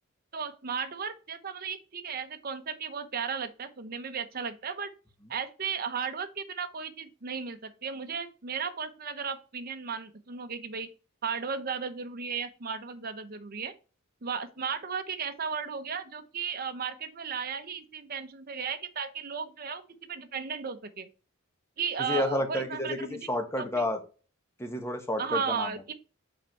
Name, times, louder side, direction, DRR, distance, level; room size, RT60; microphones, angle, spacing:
voice 1, 0.3-4.9 5.3-10.9 11.2-13.7 14.2-19.8 20.1-21.1 21.8-23.3 23.6-23.8 25.2-25.9, right 6 dB, 45° right, 8 dB, 0.8 m, -35 dB
voice 2, 22.0-24.0 24.6-25.7, left 1 dB, 10° left, 5 dB, 1.1 m, -30 dB
5.6 x 4.4 x 4.7 m, 0.34 s
head